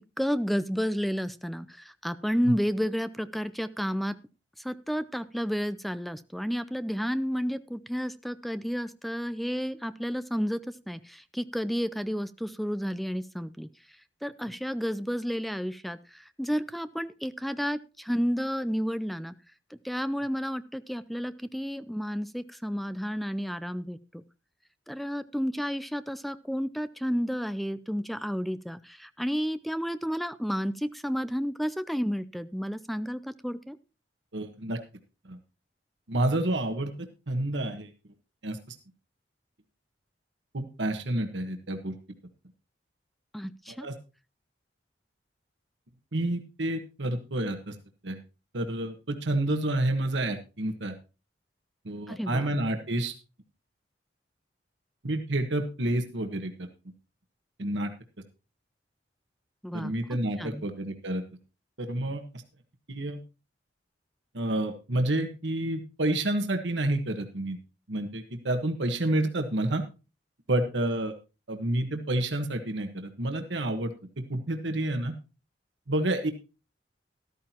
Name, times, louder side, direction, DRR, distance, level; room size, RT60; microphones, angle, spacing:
voice 1, 0.0-4.2 4.6-13.7 14.2-19.3 19.8-24.2 24.9-33.8 43.3-43.9 52.1-52.6 59.6-59.9 60.4-60.6, equal, ahead, 13 dB, 0.5 m, -31 dB
voice 2, 34.3-34.8 35.3-35.4 36.1-36.9 37.3-37.9 38.4-38.7 40.5-41.9 43.8-43.9 46.1-47.7 48.0-48.2 48.5-50.9 51.8-53.1 55.0-56.7 57.6-57.9 59.7-61.2 61.8-62.2 62.9-63.2 64.3-67.6 67.9-69.8 70.5-71.1 71.5-73.9 74.3-75.1 75.9-76.3, right 1 dB, 90° right, 6 dB, 1.4 m, -29 dB
13.5 x 13.0 x 2.9 m, 0.32 s
head